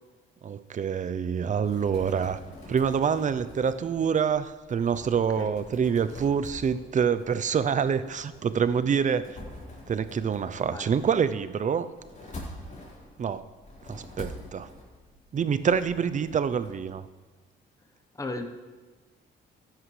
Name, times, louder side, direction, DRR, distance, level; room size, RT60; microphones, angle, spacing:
voice 1, 0.4-2.4 2.7-9.4 9.9-11.9 13.2-13.5 13.9-14.7 15.3-17.1, right 7 dB, 40° right, 13 dB, 0.6 m, -26 dB
sound 1, 1.5-16.9, left 1 dB, 40° left, 4.1 m, -46 dB
voice 2, 5.4-5.5 10.6-10.9 18.2-18.5, left 2 dB, 15° left, 5 dB, 1.0 m, -35 dB
14.5 x 10.5 x 3.3 m, 1.3 s
cardioid pair, 90°, 20 cm